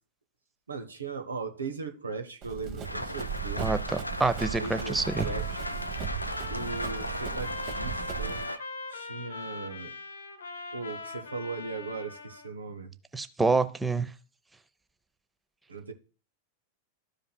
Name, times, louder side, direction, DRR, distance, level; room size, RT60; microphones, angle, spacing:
voice 1, 0.7-3.8 4.6-5.0 5.2-5.6 6.5-8.5 8.9-10.0 10.7-12.9 15.7-15.9, right 4 dB, 75° right, 1.0 m, -38 dB
Run, 2.4-8.4, right 7 dB, 35° right, 1.1 m, -37 dB
Rain, 2.8-8.6, left 1 dB, 85° left, 0.4 m, -37 dB
voice 2, 4.2-5.3 13.1-14.1, right 3 dB, 10° right, 0.6 m, -26 dB
Trumpet, 4.5-12.6, left 3 dB, 70° left, 1.1 m, -42 dB
13.0 x 5.1 x 2.2 m
figure-of-eight pair, 90°, 0 cm